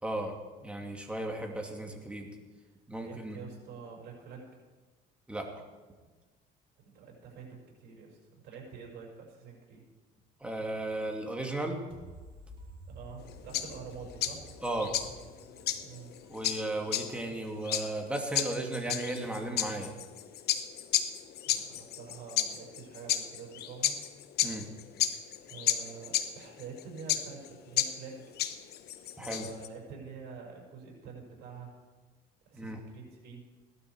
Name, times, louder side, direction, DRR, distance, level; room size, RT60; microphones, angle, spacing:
voice 1, 0.0-0.3 0.6-2.3 2.9-3.4 5.3-5.4 10.4-11.8 14.6-14.9 16.3-19.9 24.4-24.7 29.2-29.5 32.5-32.8, right 1 dB, 5° right, 1 dB, 2.5 m, -35 dB
voice 2, 3.0-4.5 6.8-8.2 8.4-9.8 12.9-14.5 15.8-16.1 21.5-24.0 25.5-28.3 29.2-31.8 32.4-33.5, right 5 dB, 75° right, -1 dB, 6.2 m, -47 dB
sound 1, 11.9-17.5, right 1 dB, 35° right, 4.4 m, -52 dB
sound 2, 13.2-29.7, left 11 dB, 70° left, 1.1 m, -33 dB
17.5 x 12.5 x 4.8 m, 1.3 s
cardioid pair, 110°, 17 cm